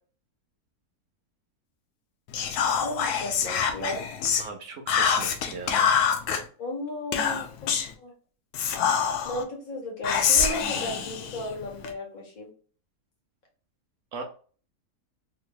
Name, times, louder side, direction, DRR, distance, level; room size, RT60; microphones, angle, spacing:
Whispering, 2.3-4.5 4.9-6.4 7.1-7.9 8.5-9.4 10.0-11.9, left 7 dB, 90° left, 1.2 m, -25 dB
voice 1, 2.8-4.0 6.6-8.1 9.2-12.5, left 1 dB, 65° left, 1 dB, 1.7 m, -35 dB
voice 2, 4.4-5.9 10.8-11.1 14.1-14.2, right 4 dB, 65° right, 3 dB, 0.9 m, -39 dB
3.9 x 3.0 x 2.2 m, 0.41 s
omnidirectional pair, 1.6 m